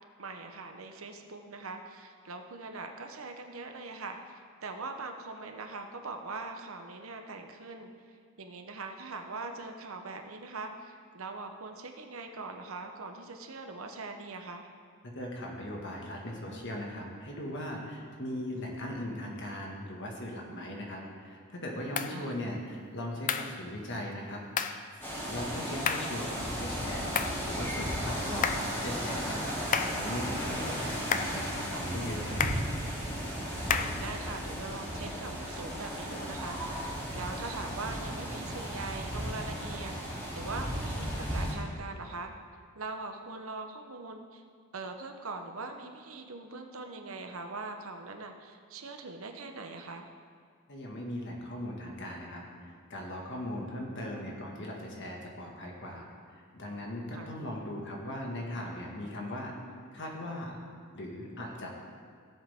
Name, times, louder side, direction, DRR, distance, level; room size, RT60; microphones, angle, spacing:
voice 1, 0.2-7.9 8.4-14.7 22.1-22.3 33.6-42.3 42.7-44.4 44.7-50.1 57.1-57.3, right 3 dB, 75° right, 5 dB, 1.0 m, -42 dB
voice 2, 15.1-25.0 25.3-32.5 50.7-59.5 59.9-60.6 60.9-61.7, left 1 dB, 60° left, -1 dB, 1.9 m, -39 dB
sound 1, 22.0-22.2 23.3-23.6 24.6-24.8 25.9-26.2 27.2-27.4 28.4-28.7 29.7-30.0 31.1-31.4 32.4-32.7 33.7-34.0, left 6 dB, 40° left, 0.5 m, -30 dB
sound 2, 25.0-41.6, equal, 10° left, 3.2 m, -35 dB
17.0 x 7.5 x 3.7 m, 2.1 s
head